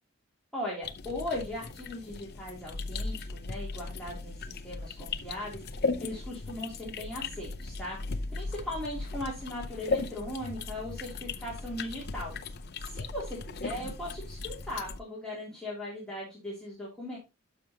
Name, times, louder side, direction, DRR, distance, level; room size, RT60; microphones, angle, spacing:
voice 1, 0.5-5.6 6.0-12.3 12.8-17.2, left 1 dB, 5° left, -7 dB, 2.9 m, -38 dB
sound 1, 0.8-15.0, left 3 dB, 50° left, 0.7 m, -37 dB
12.5 x 5.8 x 2.8 m, 0.25 s
head